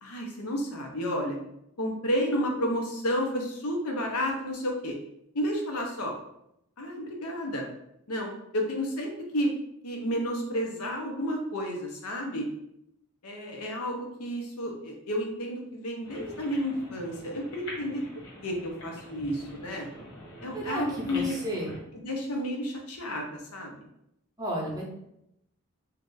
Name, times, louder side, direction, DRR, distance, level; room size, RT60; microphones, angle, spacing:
voice 1, 0.0-1.4 1.8-5.0 5.3-6.1 6.8-7.7 8.1-9.5 9.8-12.5 13.2-18.0 18.4-19.9 20.4-21.4 21.9-23.8, equal, 85° left, 1 dB, 0.8 m, -31 dB
sound 1, 16.0-21.8, left 1 dB, 60° left, 1.3 m, -45 dB
voice 2, 20.5-21.7 24.4-24.8, right 1 dB, 15° right, -2 dB, 0.7 m, -33 dB
2.8 x 2.5 x 3.7 m, 0.79 s
head